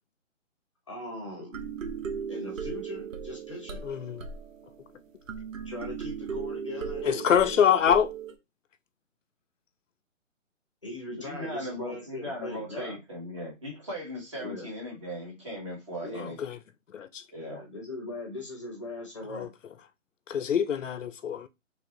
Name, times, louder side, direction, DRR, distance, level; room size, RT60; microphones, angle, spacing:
voice 1, 0.9-1.6 2.3-3.8 5.6-7.6 10.8-13.0 14.4-14.7 16.0-16.3 17.4-19.5, left 2 dB, 25° left, 0.7 m, -39 dB
sound 1, 1.5-8.3, right 6 dB, 75° right, 0.8 m, -37 dB
voice 2, 3.8-4.2 7.0-8.1 16.5-16.6 16.9-17.2 19.3-19.5 20.3-21.5, left 8 dB, 70° left, 0.5 m, -24 dB
voice 3, 11.1-16.4 17.3-17.6, equal, 25° right, 1.1 m, -38 dB
3.2 x 2.6 x 2.9 m
hypercardioid pair, 170°, 39 cm